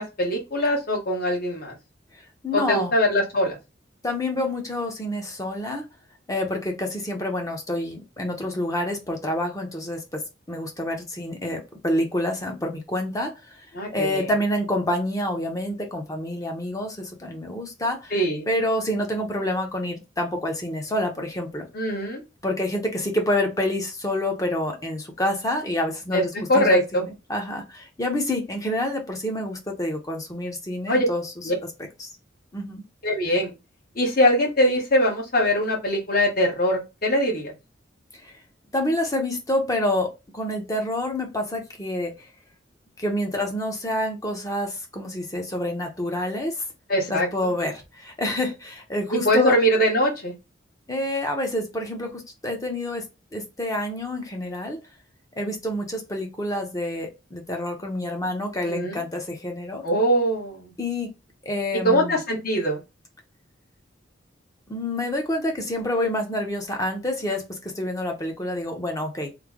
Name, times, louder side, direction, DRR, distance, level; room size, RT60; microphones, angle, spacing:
voice 1, 0.0-1.7 2.5-3.6 13.7-14.3 18.1-18.4 21.7-22.2 26.1-26.2 26.5-27.0 30.9-31.1 31.4-31.5 33.0-33.5 33.9-37.5 46.9-47.3 49.2-50.3 58.7-59.0 59.8-60.7 61.8-62.8, equal, 55° left, -1 dB, 1.3 m, -22 dB
voice 2, 2.4-2.9 4.0-5.8 6.3-10.2 10.5-13.5 13.9-18.1 18.5-21.7 22.4-26.3 26.5-31.2 32.0-32.1 32.5-32.8 38.2-38.3 38.7-42.1 43.0-46.5 47.1-49.6 50.9-53.0 53.3-54.8 55.4-59.8 60.8-61.1 61.4-62.2 64.7-69.3, left 1 dB, 20° left, 2 dB, 0.8 m, -27 dB
3.2 x 2.1 x 3.6 m, 0.25 s
head